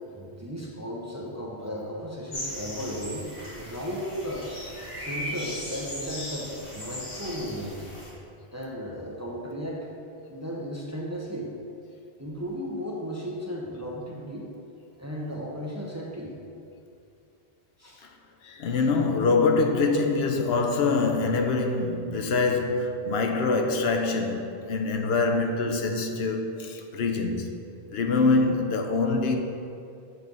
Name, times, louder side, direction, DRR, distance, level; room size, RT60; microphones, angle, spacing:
voice 1, 0.1-3.3 3.6-4.5 4.9-7.9 8.5-9.9 10.3-11.5 12.2-14.5 15.0-16.4 17.8-18.0, equal, 20° right, 0.6 m, -35 dB
sound 1, 2.3-8.1, equal, 65° left, 1.8 m, -38 dB
voice 2, 18.4-27.5 27.9-29.4, left 3 dB, 80° left, 0.9 m, -24 dB
7.8 x 3.2 x 5.2 m
omnidirectional pair, 1.0 m